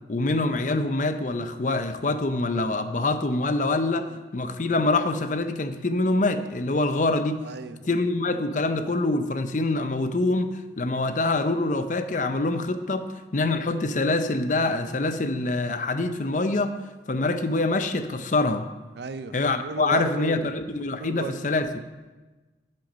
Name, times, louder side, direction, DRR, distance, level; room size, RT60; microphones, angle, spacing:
voice 1, 0.1-7.4 7.9-13.1 13.3-16.8 17.1-18.7 19.3-21.7, left 2 dB, 45° left, 9 dB, 0.6 m, -25 dB
voice 2, 3.9-4.2 7.4-7.9 18.9-20.5 20.9-21.4, right 3 dB, 65° right, 11 dB, 0.5 m, -35 dB
11.5 x 6.5 x 5.1 m, 1.2 s
head